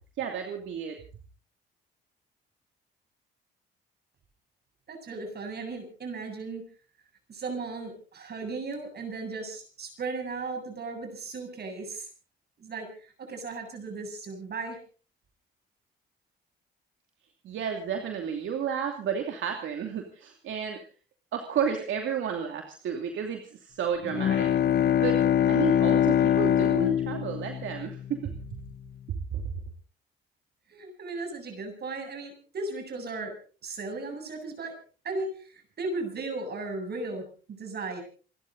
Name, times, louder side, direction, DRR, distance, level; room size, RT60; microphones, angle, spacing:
voice 1, 0.2-1.0 17.4-20.8 21.3-24.5 25.0-25.2 25.5-28.3 29.1-29.4, right 7 dB, 75° right, 4 dB, 2.7 m, -32 dB
voice 2, 4.9-6.6 7.3-12.1 12.6-14.8 30.7-33.3 33.6-34.8 35.0-38.0, right 3 dB, 55° right, 5 dB, 7.8 m, -36 dB
Bowed string instrument, 24.0-28.6, left 10 dB, 55° left, 0.9 m, -24 dB
28.5 x 12.0 x 4.0 m, 0.40 s
cardioid pair, 90°, 20 cm